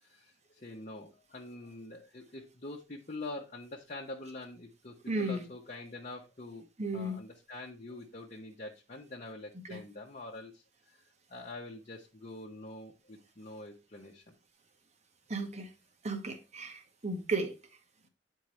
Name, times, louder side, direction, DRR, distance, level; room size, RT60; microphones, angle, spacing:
voice 1, 0.0-6.7 6.9-10.6 11.3-14.3, left 2 dB, 40° left, 0.9 m, -45 dB
voice 2, 5.1-5.4 6.8-7.2 9.6-9.8 15.3-15.7 16.0-17.5, right 2 dB, 35° right, 1.1 m, -34 dB
9.1 x 4.6 x 3.1 m
head